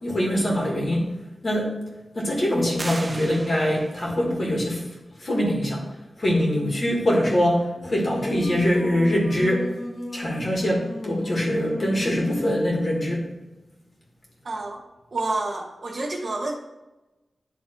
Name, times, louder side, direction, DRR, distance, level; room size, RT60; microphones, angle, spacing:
voice 1, 0.0-1.1 1.4-1.7 2.1-4.9 5.2-5.8 6.2-9.7 10.1-13.3, equal, 50° left, -3 dB, 2.1 m, -23 dB
sound 1, 2.8-4.2, right 2 dB, 30° right, 0.6 m, -36 dB
Singing, 7.8-12.6, left 1 dB, 35° left, 0.8 m, -35 dB
voice 2, 14.4-14.8 15.1-16.5, right 2 dB, 60° right, 0 dB, 1.1 m, -28 dB
10.0 x 3.4 x 4.6 m, 1.0 s
wide cardioid pair, 75°, 0 cm